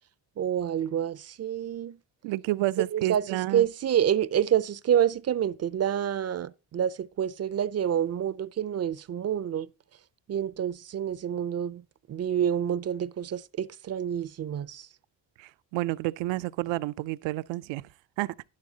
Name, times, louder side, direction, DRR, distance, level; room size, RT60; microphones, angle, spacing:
voice 1, 0.4-2.0 2.9-9.7 10.3-14.9, right 9 dB, 35° right, 0.5 m, -28 dB
voice 2, 2.2-3.7 15.4-17.9 18.2-18.3, right 17 dB, 80° right, 0.6 m, -30 dB
11.5 x 10.5 x 2.8 m
cardioid pair, 80°, 44 cm